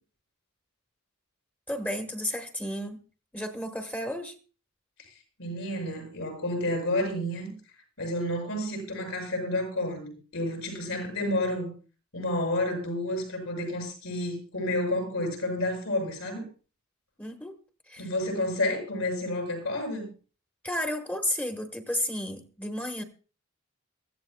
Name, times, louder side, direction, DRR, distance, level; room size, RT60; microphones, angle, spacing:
voice 1, 1.7-3.0 3.3-4.3 17.2-17.5 17.9-18.1 20.6-23.0, left 1 dB, 10° left, 5 dB, 1.1 m, -32 dB
voice 2, 5.4-7.5 8.0-11.7 12.1-16.5 18.0-20.1, left 1 dB, 85° left, 2 dB, 7.0 m, -30 dB
23.5 x 15.0 x 2.2 m, 0.36 s
head